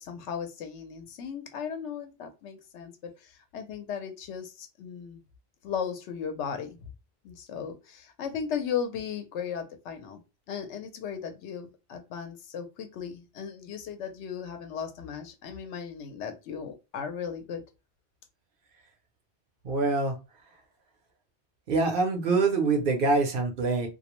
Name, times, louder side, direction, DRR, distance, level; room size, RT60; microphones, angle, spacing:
voice 1, 0.0-5.2 5.6-6.9 7.2-10.2 10.5-17.6, left 7 dB, 85° left, 6 dB, 0.9 m, -36 dB
voice 2, 19.6-20.2 21.7-23.9, right 3 dB, 60° right, 4 dB, 0.7 m, -25 dB
2.3 x 2.0 x 2.9 m, 0.28 s
omnidirectional pair, 1.1 m